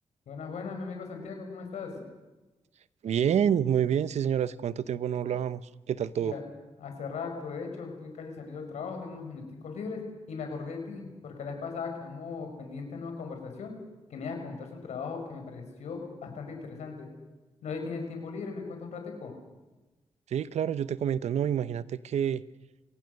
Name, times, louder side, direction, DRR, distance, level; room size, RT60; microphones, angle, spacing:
voice 1, 0.3-2.0 6.2-6.4 6.8-10.0 10.3-13.7 14.1-17.1 17.6-19.3, left 5 dB, 85° left, 4 dB, 5.3 m, -38 dB
voice 2, 3.0-6.4 20.3-22.4, right 9 dB, 80° right, 16 dB, 0.8 m, -28 dB
27.5 x 18.5 x 6.6 m, 1.1 s
cardioid pair, 65°, 11 cm